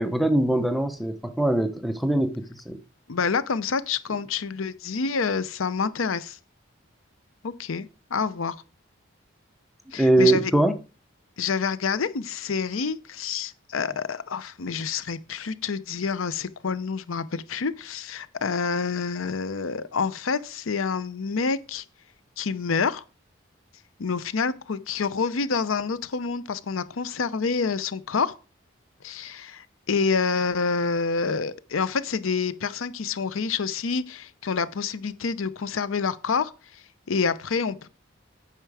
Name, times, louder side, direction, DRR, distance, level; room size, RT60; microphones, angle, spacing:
voice 1, 0.0-2.8 10.0-10.8, right 1 dB, ahead, 0.7 m, -22 dB
voice 2, 3.1-6.4 7.4-8.5 9.9-10.5 11.4-21.8 22.4-23.0 24.0-28.3 29.0-37.9, left 5 dB, 90° left, 0.6 m, -28 dB
9.0 x 5.8 x 4.8 m
head